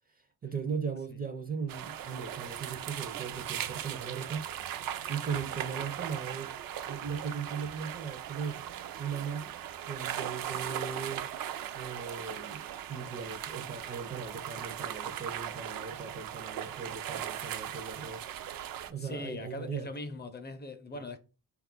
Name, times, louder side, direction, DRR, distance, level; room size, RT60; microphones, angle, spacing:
voice 1, 0.4-4.5 5.1-6.6 6.8-8.6 9.0-9.6 9.9-11.3 11.7-19.9 20.9-21.1, right 6 dB, 25° right, 0.4 m, -38 dB
sound 1, 1.7-18.9, right 10 dB, 85° right, 0.5 m, -39 dB
voice 2, 19.0-21.2, left 2 dB, 30° left, 0.5 m, -40 dB
4.0 x 2.4 x 3.7 m
cardioid pair, 120°, 34 cm